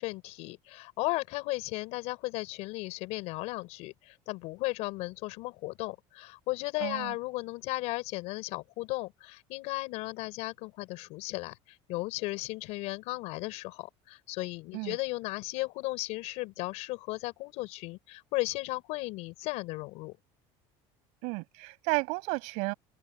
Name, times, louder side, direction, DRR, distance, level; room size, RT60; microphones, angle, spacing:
voice 1, 0.0-20.2, left 22 dB, 65° left, 6.1 m, -35 dB
voice 2, 6.8-7.1 14.7-15.0 21.2-22.7, right 29 dB, 75° right, 6.6 m, -32 dB
open air
cardioid pair, 165°, 12 cm